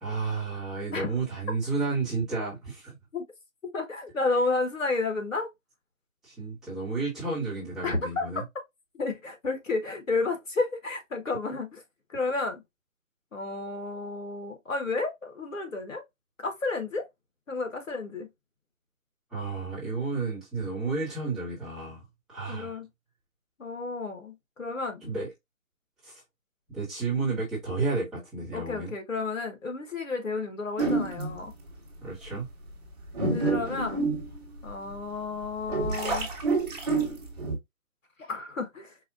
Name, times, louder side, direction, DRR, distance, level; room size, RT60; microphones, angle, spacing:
voice 1, 0.0-2.9 6.2-8.4 19.3-22.8 25.0-25.3 26.0-26.2 26.7-28.9 32.0-32.5, right 4 dB, ahead, 1.1 m, -32 dB
voice 2, 3.7-5.5 7.8-8.3 8.9-11.8 12.1-12.6 13.3-16.0 16.4-17.1 17.5-18.3 22.5-22.9 23.6-25.0 28.5-31.5 33.3-34.0 34.6-36.3 38.2-39.0, left 3 dB, 65° left, 1.6 m, -31 dB
sound 1, 30.8-31.5 32.1-32.2 32.8-34.9 35.4-37.6, right 3 dB, 30° right, 1.2 m, -28 dB
4.7 x 2.4 x 2.5 m
figure-of-eight pair, 155°, 41 cm